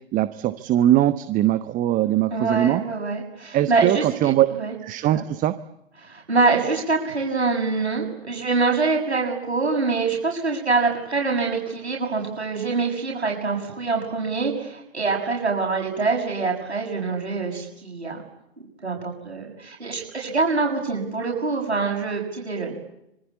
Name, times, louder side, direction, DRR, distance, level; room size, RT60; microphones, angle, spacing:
voice 1, 0.1-2.8 3.5-4.5 4.8-5.5, right 13 dB, 25° right, 13 dB, 1.1 m, -21 dB
voice 2, 2.3-4.7 5.1-5.2 6.0-18.2 18.8-22.8, right 4 dB, 85° right, 0 dB, 6.9 m, -25 dB
26.0 x 24.0 x 8.5 m, 0.82 s
figure-of-eight pair, 110°, 32 cm